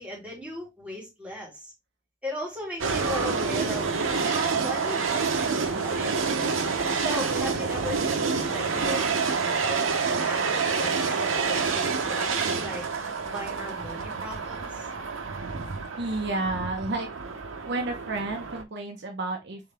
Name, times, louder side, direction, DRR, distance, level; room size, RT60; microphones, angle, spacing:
voice 1, 0.0-1.7 2.2-3.9 4.2-6.1 6.9-9.1 9.4-12.9 13.2-14.9, left 1 dB, 5° right, 2.5 m, -37 dB
sound 1, 2.8-18.6, right 5 dB, 90° right, 0.8 m, -28 dB
voice 2, 16.0-17.3 17.7-19.7, right 2 dB, 60° right, 0.9 m, -31 dB
3.9 x 3.7 x 3.3 m
head